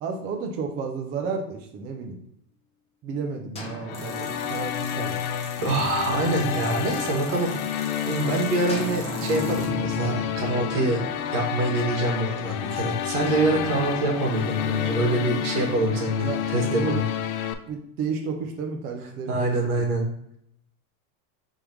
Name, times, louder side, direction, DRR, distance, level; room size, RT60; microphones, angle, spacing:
voice 1, 0.0-2.2 3.0-5.2 16.2-16.4 16.7-17.0 17.7-19.9, right 5 dB, 25° right, 2 dB, 0.3 m, -32 dB
sound 1, 3.5-7.3 8.7-12.2 13.3-17.4, equal, 15° left, 0.6 m, -38 dB
sound 2, 3.9-17.5, left 9 dB, 70° left, 0.6 m, -30 dB
sound 3, 3.9-9.7, equal, 5° right, 1.1 m, -44 dB
voice 2, 5.6-7.5 8.0-11.0 11.3-17.1 19.3-20.4, right 2 dB, 75° right, 1 dB, 1.7 m, -25 dB
4.9 x 3.6 x 2.9 m, 0.72 s
supercardioid pair, 145°, 45 cm